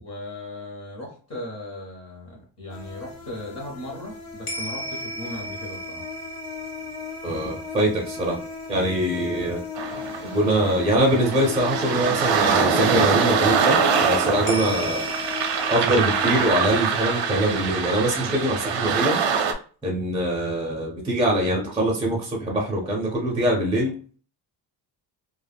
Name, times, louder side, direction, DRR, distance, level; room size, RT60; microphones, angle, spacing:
voice 1, 0.0-6.0, left 1 dB, 35° left, -2 dB, 0.8 m, -37 dB
sound 1, 2.7-17.7, left 6 dB, 90° left, 1.0 m, -36 dB
sound 2, 4.5-12.5 14.5-19.3, right 1 dB, 60° left, 0.9 m, -38 dB
voice 2, 7.2-8.4 8.7-9.6 10.3-15.1 15.7-19.2 19.8-23.9, right 1 dB, 10° right, -3 dB, 0.5 m, -23 dB
sound 3, 9.8-19.5, right 6 dB, 70° right, 0.6 m, -24 dB
2.3 x 2.0 x 3.4 m, 0.40 s
cardioid pair, 165°, 44 cm